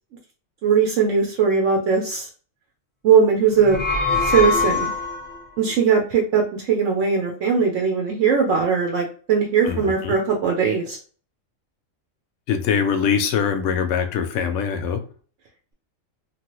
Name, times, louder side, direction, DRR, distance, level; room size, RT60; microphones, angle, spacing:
voice 1, 0.6-2.3 3.0-3.8 4.2-4.9 5.6-11.0, right 6 dB, 70° right, 1 dB, 0.9 m, -19 dB
sound 1, 3.5-5.4, left 4 dB, 10° left, 0.7 m, -23 dB
voice 2, 9.6-10.1 12.5-15.0, left 7 dB, 70° left, 7 dB, 0.9 m, -23 dB
3.0 x 2.3 x 3.0 m, 0.41 s
omnidirectional pair, 1.4 m